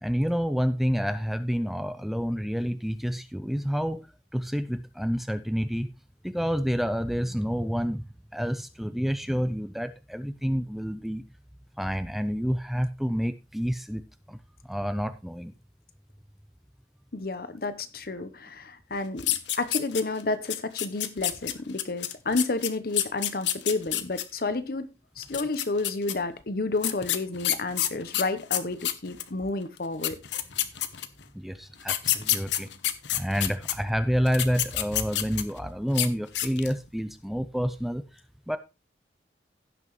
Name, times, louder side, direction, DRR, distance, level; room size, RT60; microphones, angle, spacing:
voice 1, 0.0-4.1 4.3-5.9 6.2-8.0 8.3-11.2 11.8-14.0 14.3-14.4 14.6-15.5 31.3-32.7 33.1-38.0 38.5-38.6, equal, ahead, 0.4 m, -28 dB
voice 2, 17.1-30.2, left 3 dB, 55° left, 0.9 m, -31 dB
sound 1, 19.2-20.2 20.5-24.2 25.2-26.1 26.8-29.3 29.8-29.9 30.0-31.2 31.8-33.7 34.3-35.6 35.9-36.1 36.3-36.8, left 12 dB, 85° left, 0.8 m, -28 dB
16.0 x 6.0 x 3.1 m
head